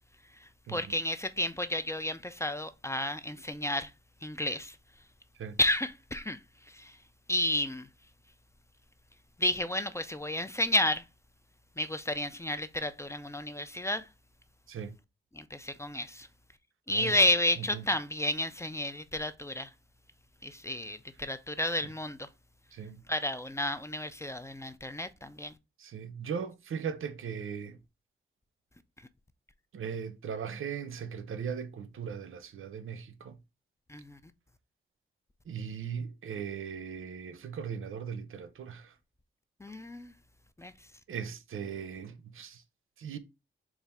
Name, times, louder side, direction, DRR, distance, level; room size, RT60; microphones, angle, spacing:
voice 1, 0.7-3.9 4.2-4.8 5.6-6.4 6.7-6.9 7.3-7.9 9.4-11.0 11.8-14.1 15.3-16.3 16.9-19.7 20.4-22.3 23.1-25.5 33.9-34.2 39.6-40.1 40.6-40.7, left 1 dB, 15° left, 0.3 m, -31 dB
voice 2, 16.9-17.2 17.7-17.8 22.7-23.0 25.8-27.8 29.7-33.3 35.5-38.9 41.1-42.6 43.0-43.2, right 7 dB, 90° right, 0.5 m, -38 dB
4.1 x 2.4 x 3.4 m
wide cardioid pair, 95°, 20 cm